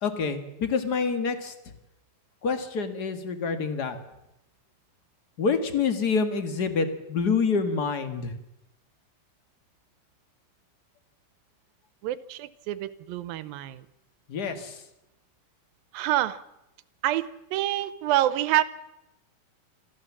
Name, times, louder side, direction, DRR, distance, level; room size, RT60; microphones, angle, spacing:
voice 1, 0.0-1.5 2.4-4.0 5.4-8.3 14.3-14.8, left 5 dB, 40° left, 8 dB, 1.6 m, -27 dB
voice 2, 12.0-13.9 15.9-16.4 17.0-18.6, right 14 dB, 85° right, 15 dB, 2.7 m, -27 dB
27.0 x 14.0 x 7.3 m, 0.91 s
omnidirectional pair, 4.0 m